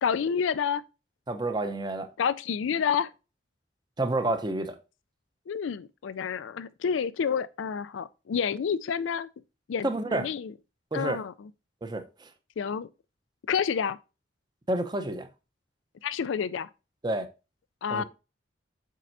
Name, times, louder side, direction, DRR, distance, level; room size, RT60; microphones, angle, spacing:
voice 1, 0.0-0.8 2.2-3.1 5.5-9.3 9.7-10.5 10.9-11.5 12.6-12.9 13.5-14.0 16.0-16.7 17.8-18.0, left 7 dB, 75° left, 0.4 m, -29 dB
voice 2, 1.3-2.1 4.0-4.7 9.8-10.3 10.9-11.2 11.8-12.3 14.7-15.3 17.0-17.3 17.9-18.0, right 2 dB, 20° right, 0.7 m, -29 dB
7.5 x 5.3 x 2.6 m
head